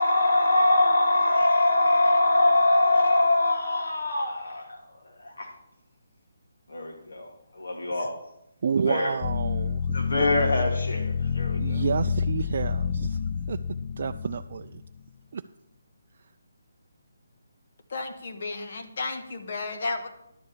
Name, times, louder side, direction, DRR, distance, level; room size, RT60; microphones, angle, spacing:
voice 1, 0.0-5.5 6.7-7.3 7.5-8.1 8.9-9.1 9.9-11.8, left 2 dB, 75° left, 1 dB, 2.7 m, -23 dB
voice 2, 8.6-10.0 11.6-13.2 13.5-13.6 14.0-14.8 15.3-15.4, right 6 dB, 50° right, 7 dB, 0.3 m, -29 dB
sound 1, 9.2-15.0, left 6 dB, 30° left, 0.4 m, -28 dB
voice 3, 17.9-20.1, left 3 dB, 50° left, 6 dB, 1.4 m, -33 dB
11.0 x 4.8 x 8.3 m, 0.82 s
hypercardioid pair, 165°, 0 cm